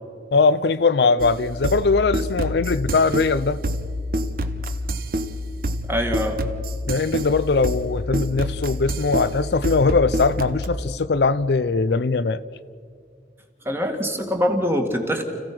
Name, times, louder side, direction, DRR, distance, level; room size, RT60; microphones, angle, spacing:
voice 1, 0.3-3.6 6.9-12.4, left 4 dB, 65° left, 0.5 m, -20 dB
sound 1, 1.2-10.7, equal, 50° right, 1.0 m, -27 dB
voice 2, 5.9-6.4 13.7-15.2, equal, 15° right, 2.0 m, -23 dB
30.0 x 15.5 x 6.1 m
head